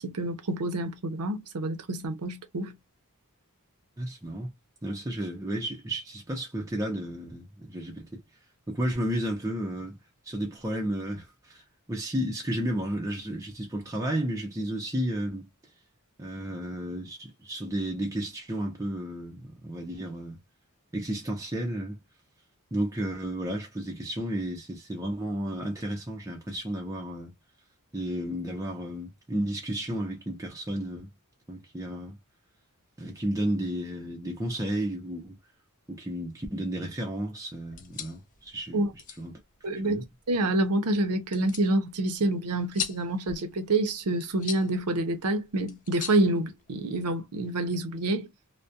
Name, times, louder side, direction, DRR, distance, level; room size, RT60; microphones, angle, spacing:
voice 1, 0.0-2.7 38.7-38.9 39.6-48.3, right 2 dB, 85° right, 0.6 m, -27 dB
voice 2, 4.0-4.5 4.8-8.2 8.7-10.0 10.2-15.5 16.2-20.4 20.9-22.0 22.7-27.3 27.9-31.1 31.5-32.2 33.0-35.4 35.9-38.8 39.2-40.0, right 1 dB, 15° right, 0.5 m, -32 dB
sound 1, 37.6-47.1, left 7 dB, 35° left, 0.4 m, -42 dB
2.3 x 2.1 x 2.6 m
head